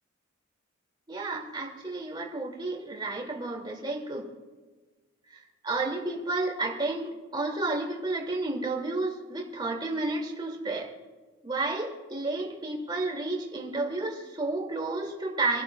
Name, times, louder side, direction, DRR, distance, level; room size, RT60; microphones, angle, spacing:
voice 1, 1.1-4.3 5.3-10.9 11.4-15.6, right 2 dB, 20° right, 0 dB, 2.4 m, -31 dB
29.0 x 11.0 x 2.3 m, 1.3 s
head